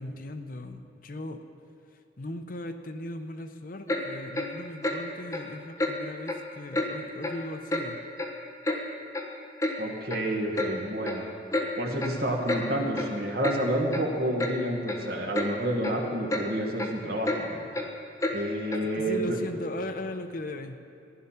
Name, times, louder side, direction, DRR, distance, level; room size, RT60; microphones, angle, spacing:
voice 1, 0.0-1.4 2.2-8.0 18.8-20.8, left 1 dB, 50° left, 7 dB, 0.8 m, -38 dB
Clock, 3.9-4.0 4.3-4.5 4.8-5.0 5.3-5.5 5.8-5.9 6.3-6.4 6.7-6.9 7.2-7.4 7.7-7.8 8.2-8.8 9.1-9.2 9.6-9.8 10.1-10.2 10.6-10.7 11.1-11.2 11.5-11.7 12.0-12.2 12.5-12.6 13.0-13.1 13.4-13.6 13.9-14.0 14.4-14.5 14.9-15.0 15.3-15.5 15.8-16.0 16.3-16.5 16.8-16.9 17.2-17.4 17.7-17.9 18.2-18.4 18.7-18.9, left 1 dB, 15° left, 1.3 m, -29 dB
voice 2, 9.8-11.2 11.8-17.6 18.3-19.4, right 1 dB, 60° right, 0 dB, 1.9 m, -29 dB
15.5 x 11.0 x 5.8 m, 2.6 s
head